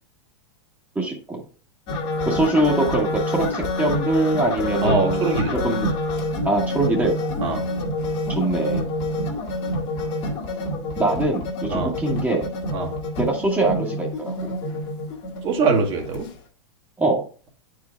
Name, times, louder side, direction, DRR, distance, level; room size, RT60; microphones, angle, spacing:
voice 1, 0.9-1.4 2.2-5.3 5.6-5.9 6.4-7.1 8.3-8.9 11.0-12.5 13.2-14.5 17.0-17.2, right 2 dB, 10° right, -1 dB, 1.5 m, -23 dB
sound 1, 1.9-16.3, left 1 dB, 45° left, 1.8 m, -27 dB
voice 2, 4.8-5.6 7.4-7.7 11.7-11.9 12.7-12.9 15.4-16.3, right 4 dB, 35° right, 2 dB, 1.8 m, -22 dB
9.9 x 4.8 x 2.3 m, 0.39 s
hypercardioid pair, 110°, 14 cm